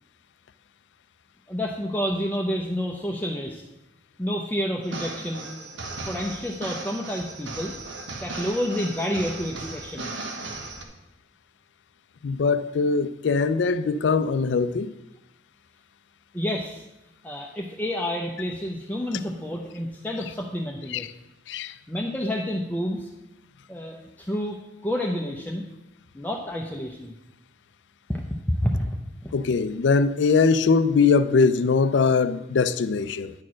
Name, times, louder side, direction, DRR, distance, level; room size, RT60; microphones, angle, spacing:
voice 1, 1.5-3.6 4.2-5.5 6.1-7.7 8.2-10.1 16.3-16.8 17.2-21.1 21.9-23.1 23.7-25.6 26.1-27.2 28.1-29.0 29.2-29.3, equal, 10° left, 0.6 m, -29 dB
sound 1, 4.8-10.8, right 3 dB, 85° right, 1.1 m, -36 dB
voice 2, 12.2-14.9 20.9-21.0 21.5-21.7 29.3-33.3, left 4 dB, 80° left, 0.4 m, -21 dB
9.5 x 4.4 x 6.2 m
head